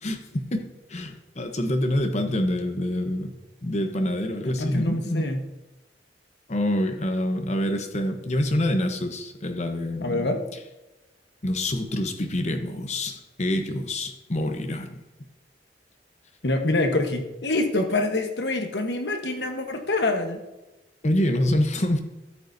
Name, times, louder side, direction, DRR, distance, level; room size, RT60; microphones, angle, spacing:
voice 1, 0.0-3.3 3.6-5.2 6.5-10.3 11.4-15.0 21.0-22.0, left 1 dB, 40° left, 5 dB, 0.9 m, -26 dB
voice 2, 4.4-5.4 10.0-10.4 16.4-20.4, left 2 dB, 70° left, 4 dB, 1.2 m, -25 dB
13.0 x 7.8 x 2.7 m, 1.0 s
head